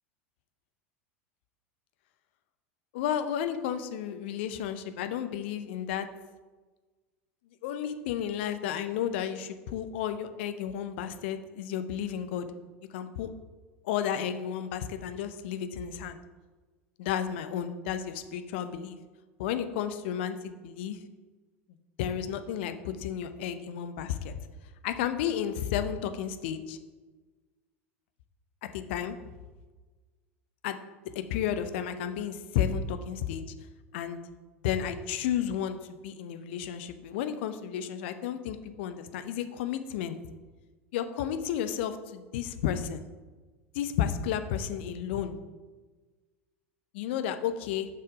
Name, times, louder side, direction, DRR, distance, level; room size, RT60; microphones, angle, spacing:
voice 1, 2.9-6.1 7.6-12.5 12.9-13.3 13.8-16.2 17.0-19.0 19.4-21.0 22.0-24.4 24.8-26.8 28.6-29.2 30.6-30.8 31.0-33.4 33.9-34.2 34.6-35.8 36.0-40.2 40.9-43.0 43.7-45.4 46.9-47.9, left 9 dB, 55° left, 10 dB, 0.6 m, -32 dB
6.4 x 5.6 x 5.0 m, 1.3 s
figure-of-eight pair, 80°, 7 cm